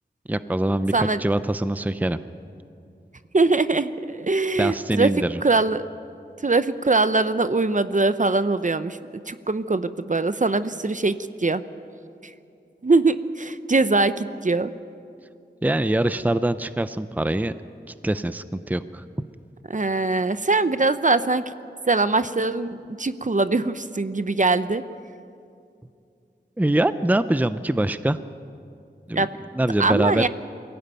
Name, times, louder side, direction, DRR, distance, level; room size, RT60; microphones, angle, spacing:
voice 1, 0.3-2.2 4.6-5.4 15.6-17.5 18.0-19.0 26.6-28.2 29.1-29.3 29.5-30.3, right 1 dB, 10° right, 12 dB, 0.6 m, -23 dB
voice 2, 3.3-5.1 5.4-5.8 6.4-9.0 9.3-11.6 12.8-14.7 19.7-21.4 21.9-24.8 29.1-29.3 29.8-30.3, right 3 dB, 45° right, 12 dB, 0.8 m, -22 dB
22.5 x 15.5 x 9.1 m, 2.5 s
wide cardioid pair, 55°, 18 cm